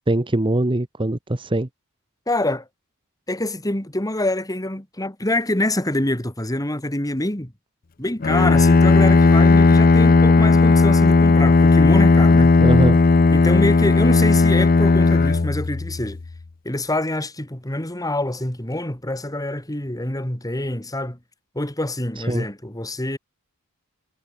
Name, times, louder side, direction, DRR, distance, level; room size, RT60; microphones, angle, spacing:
voice 1, 0.1-1.7 12.6-13.0 22.3-22.5, right 1 dB, 25° right, 1.1 m, -21 dB
voice 2, 2.3-2.7 3.3-7.5 8.0-12.6 13.3-16.2 16.6-21.2 21.5-23.2, left 1 dB, 15° left, 2.8 m, -25 dB
Bowed string instrument, 8.2-16.2, left 3 dB, 40° left, 0.6 m, -15 dB
head